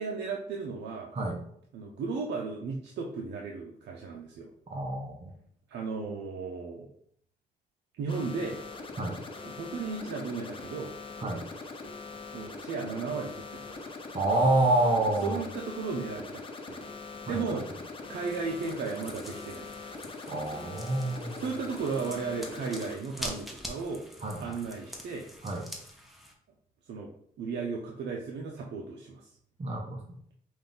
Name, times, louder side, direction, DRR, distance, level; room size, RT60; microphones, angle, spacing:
voice 1, 0.0-1.1 1.7-4.5 5.7-6.9 8.0-8.6 9.4-10.9 12.3-13.9 15.2-16.4 16.7-16.9 17.3-17.7 18.1-19.9 21.3-24.0 24.4-25.3 26.9-27.1 27.4-29.3, right 4 dB, 85° right, 0 dB, 0.7 m, -35 dB
voice 2, 4.7-5.3 9.0-9.2 11.2-11.4 14.1-15.4 17.3-17.4 20.3-21.4 24.2-24.5 25.4-25.6 29.6-30.0, right 2 dB, 35° right, 0 dB, 0.9 m, -28 dB
sound 1, 8.1-22.9, left 3 dB, 30° left, 0.8 m, -42 dB
sound 2, 18.2-26.3, equal, ahead, 1.1 m, -45 dB
5.2 x 2.6 x 3.9 m, 0.65 s
cardioid pair, 85°, 18 cm